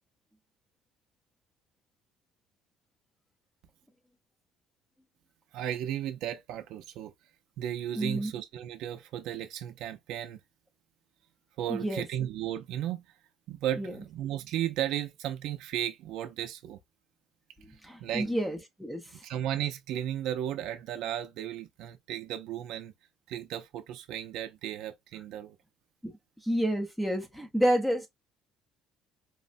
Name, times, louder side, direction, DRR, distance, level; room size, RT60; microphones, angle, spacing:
voice 1, 5.5-7.1 7.6-10.4 11.6-13.0 13.5-16.8 18.0-18.3 19.2-22.9 23.3-25.6, right 11 dB, 70° right, 0.5 m, -34 dB
voice 2, 8.0-8.3 11.7-12.1 13.8-13.9 17.8-19.2 26.0-26.1 26.4-28.1, equal, ahead, 0.6 m, -29 dB
3.1 x 2.1 x 2.5 m
cardioid pair, 155°, 0 cm